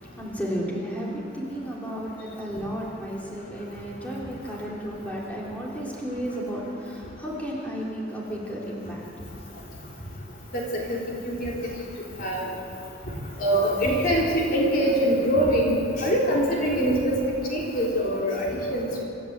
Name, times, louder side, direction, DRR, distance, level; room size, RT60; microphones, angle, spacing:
voice 1, 0.2-9.0, equal, 10° left, -5 dB, 3.8 m, -33 dB
voice 2, 13.4-17.2 17.5-19.0, equal, 50° left, -3 dB, 3.7 m, -23 dB
26.0 x 13.0 x 8.2 m, 2.6 s
head